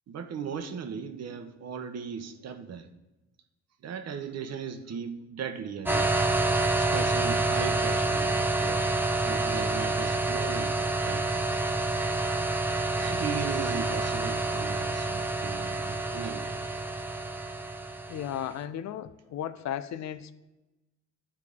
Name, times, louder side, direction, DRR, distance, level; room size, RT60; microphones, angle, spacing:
voice 1, 0.1-2.9 3.8-6.1 6.8-8.8 9.2-11.6 13.0-16.6, right 6 dB, 55° right, 7 dB, 0.9 m, -37 dB
sound 1, 5.9-18.5, right 2 dB, 5° right, 0.6 m, -28 dB
voice 2, 18.1-20.3, left 10 dB, 65° left, 13 dB, 0.5 m, -35 dB
11.5 x 4.8 x 3.6 m, 1.1 s
cardioid pair, 90°, 30 cm